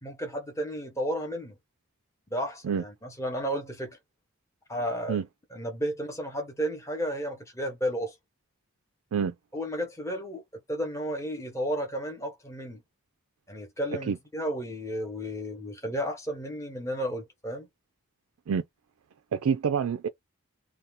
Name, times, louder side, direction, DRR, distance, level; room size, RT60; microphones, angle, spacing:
voice 1, 0.0-1.6 2.3-4.0 4.7-5.2 5.5-8.1 9.2-10.4 10.7-12.8 13.5-17.7, equal, 15° left, 0.9 m, -33 dB
voice 2, 19.3-20.1, right 7 dB, 85° right, 0.4 m, -26 dB
2.7 x 2.3 x 3.5 m
head